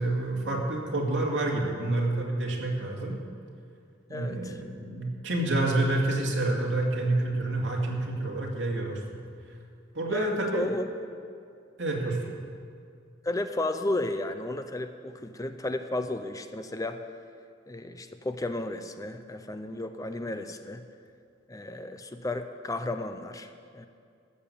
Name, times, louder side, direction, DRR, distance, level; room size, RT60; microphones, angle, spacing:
voice 1, 0.0-3.2 4.1-9.2 9.9-10.7 11.8-12.2, right 2 dB, 70° right, -1 dB, 2.3 m, -28 dB
voice 2, 4.1-4.6 10.1-10.9 13.2-17.0 17.7-20.8 21.5-23.9, left 2 dB, 20° left, 8 dB, 0.5 m, -33 dB
14.0 x 7.0 x 8.5 m, 2.3 s
head